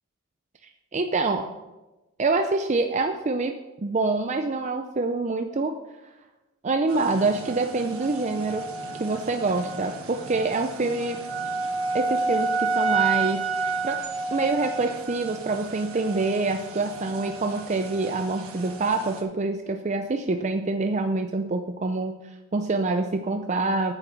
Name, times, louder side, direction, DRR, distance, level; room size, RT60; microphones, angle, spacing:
voice 1, 0.9-1.5 2.2-3.5 3.8-5.7 6.6-8.6 9.0-11.2 11.9-13.5 13.8-14.0 14.3-23.9, right 3 dB, 30° right, 6 dB, 0.5 m, -26 dB
sound 1, 6.9-19.2, right 4 dB, 75° right, 1.4 m, -31 dB
9.2 x 6.8 x 6.0 m, 1.1 s
head